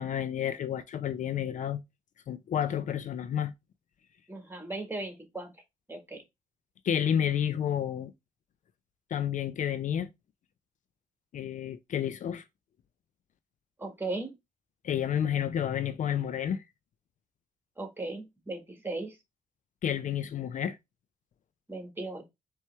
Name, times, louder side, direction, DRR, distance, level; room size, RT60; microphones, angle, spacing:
voice 1, 0.0-1.8 2.3-3.5 6.8-8.1 9.1-10.1 11.3-12.4 14.8-16.6 19.8-20.8, left 9 dB, 65° left, 0.5 m, -30 dB
voice 2, 4.3-5.5 5.9-6.2 13.8-14.3 17.8-19.2 21.7-22.3, right 2 dB, 15° right, 1.7 m, -37 dB
4.4 x 3.1 x 3.3 m
supercardioid pair, 55°, 14 cm